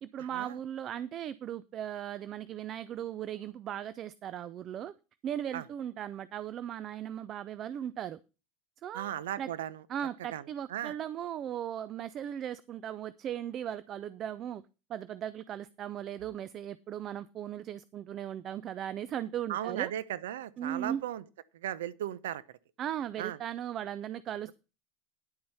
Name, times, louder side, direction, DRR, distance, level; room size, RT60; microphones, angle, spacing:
voice 1, 0.0-4.9 5.2-8.2 8.8-9.1 9.4-9.5 9.9-14.6 14.9-19.9 20.6-21.0 22.8-24.5, right 10 dB, 40° right, 0.5 m, -37 dB
voice 2, 8.9-9.8 10.3-10.4 10.7-10.9 19.5-21.2 21.6-22.4 23.2-23.4, right 11 dB, 65° right, 0.8 m, -36 dB
10.5 x 8.6 x 4.1 m
figure-of-eight pair, 75°, 0 cm